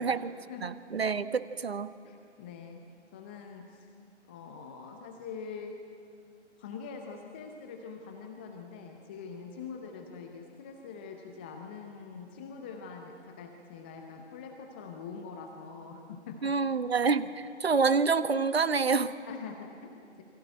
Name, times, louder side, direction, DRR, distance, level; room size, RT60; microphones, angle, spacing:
voice 1, 0.6-1.9 16.4-19.1, right 5 dB, 60° right, 12 dB, 1.4 m, -27 dB
voice 2, 2.0-2.8 3.1-3.9 4.3-5.8 6.6-16.5 17.7-17.8 19.3-20.2, left 5 dB, 10° left, 3 dB, 0.7 m, -44 dB
28.5 x 23.5 x 9.1 m, 2.4 s
figure-of-eight pair, 145°, 35 cm